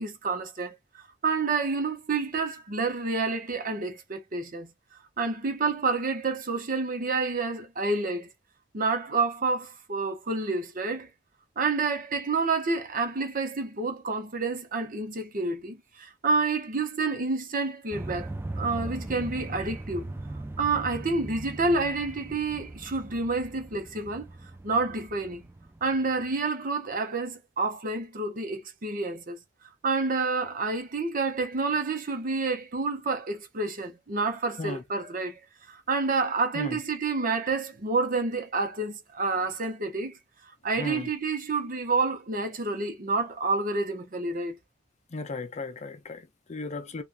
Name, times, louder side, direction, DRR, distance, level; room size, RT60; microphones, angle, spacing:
voice 1, 0.0-4.7 5.2-8.3 8.7-11.1 11.6-18.3 18.6-20.1 20.6-24.3 24.6-25.5 25.8-29.4 29.8-35.4 35.7-40.2 40.6-44.6, right 3 dB, 50° right, 0.8 m, -29 dB
sound 1, 17.9-26.3, right 2 dB, 10° right, 0.3 m, -39 dB
voice 2, 40.8-41.1 45.1-47.0, left 3 dB, 40° left, 0.5 m, -35 dB
3.4 x 2.4 x 2.5 m
head